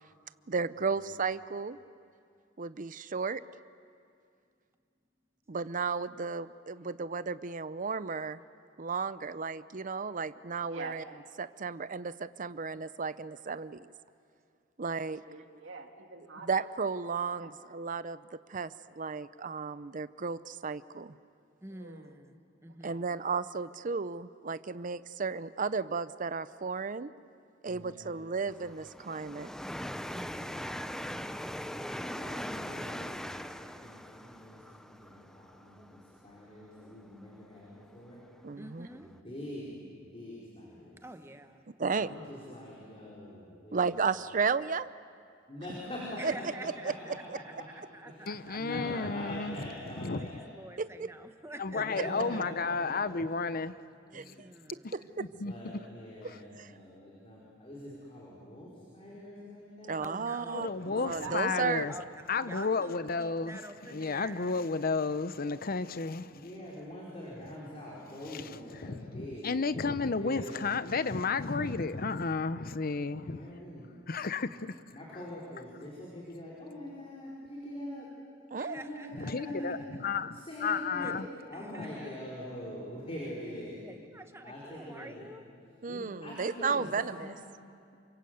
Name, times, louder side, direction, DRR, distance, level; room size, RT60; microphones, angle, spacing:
voice 1, 0.5-1.8 2.6-3.4 5.5-8.4 8.8-11.0 11.4-13.9 14.8-15.2 16.5-18.2 18.5-21.1 22.8-27.1 27.6-29.5 38.4-38.9 41.8-42.2 43.7-44.9 46.2-46.3 47.3-47.4 50.8-51.1 54.1-55.3 56.2-56.7 59.9-60.7 61.0-61.9 78.5-78.8 85.8-87.4, right 5 dB, 45° right, 0.6 m, -34 dB
voice 2, 10.6-11.0 15.1-16.6 17.3-17.5 21.7-22.2 22.7-23.2 32.0-33.1 60.8-61.8 62.1-62.5 63.1-63.5, right 4 dB, 75° right, 2.4 m, -47 dB
voice 3, 21.6-23.0 30.1-31.2 38.6-39.1 41.0-41.6 46.2-49.3 50.1-52.4 54.1-54.9 60.0-60.9 61.5-64.6 78.5-80.1 81.0-81.1 81.5-82.2 83.8-85.4, right 1 dB, 15° right, 1.1 m, -48 dB
voice 4, 27.7-28.6 32.2-33.2 33.6-38.2 38.9-39.8 40.1-41.0 41.9-44.2 45.5-47.4 48.1-50.5 51.7-53.4 54.1-54.3 55.3-58.7 58.9-60.0 60.8-61.6 66.3-69.6 70.1-71.3 73.3-73.9 74.9-78.1 78.6-79.9 80.3-81.2 81.5-83.8 84.4-85.3 85.9-87.4, left 1 dB, 30° left, 5.0 m, -44 dB
sound 1, 28.5-37.2 37.8-37.9 38.7-38.8, equal, 5° left, 0.6 m, -41 dB
voice 5, 48.3-50.4 51.6-53.7 54.8-54.9 55.4-55.8 60.5-61.9 62.3-63.6 63.9-66.4 68.3-73.4 74.1-74.8 79.2-81.3 81.8-81.9, left 4 dB, 50° left, 0.8 m, -32 dB
28.5 x 25.5 x 7.9 m
head